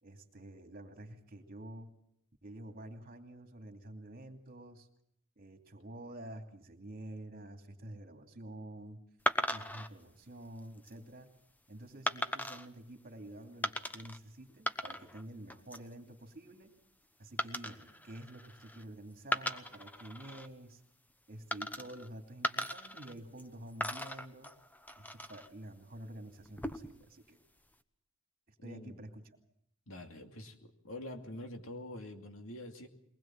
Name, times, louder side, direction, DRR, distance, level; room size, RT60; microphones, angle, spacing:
voice 1, 0.0-1.9 2.4-4.9 5.4-9.0 9.5-11.3 11.7-16.7 17.2-20.8 21.3-24.5 25.0-27.4 28.5-29.2, right 1 dB, 45° right, 5 dB, 2.8 m, -49 dB
sound 1, 9.3-9.9 10.6-10.9 12.1-12.7 13.6-14.2 14.5-15.2 15.5-15.9 17.4-18.8 19.2-20.5 21.5-22.1 22.4-23.5 23.8-25.5 26.4-27.0, left 1 dB, 10° left, 1.0 m, -37 dB
voice 2, 28.6-29.0 29.9-32.9, left 1 dB, 75° left, 5 dB, 2.6 m, -46 dB
22.5 x 20.0 x 7.5 m, 0.71 s
head